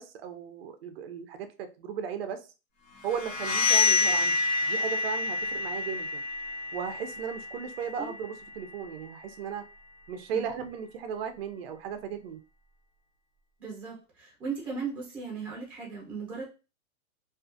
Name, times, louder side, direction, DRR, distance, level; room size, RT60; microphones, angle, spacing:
voice 1, 0.0-2.4 3.0-4.4 4.6-6.2 6.7-9.7 10.1-12.4, right 7 dB, 50° right, 8 dB, 0.4 m, -36 dB
sound 1, 3.1-8.7, left 4 dB, 70° left, 1.0 m, -28 dB
voice 2, 13.6-16.4, right 5 dB, 5° right, -3 dB, 0.7 m, -37 dB
2.4 x 2.3 x 2.4 m, 0.31 s
supercardioid pair, 165°, 41 cm